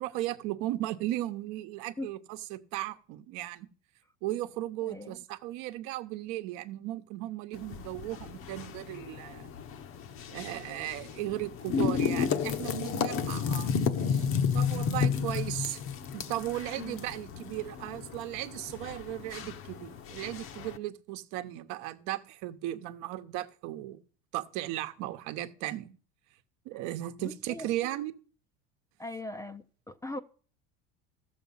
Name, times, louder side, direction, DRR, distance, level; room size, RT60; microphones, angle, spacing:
voice 1, 0.0-3.7 4.2-9.5 10.3-13.7 14.1-14.3 14.5-15.8 16.1-24.0 24.3-26.0 26.6-28.1, right 15 dB, 65° right, 1.0 m, -36 dB
voice 2, 4.8-5.2 16.8-17.0 26.7-26.8 27.2-27.7 29.0-30.2, left 2 dB, 10° left, 0.5 m, -40 dB
sound 1, 7.5-20.8, left 6 dB, 45° left, 1.0 m, -32 dB
14.0 x 7.0 x 5.6 m
supercardioid pair, 120°, 31 cm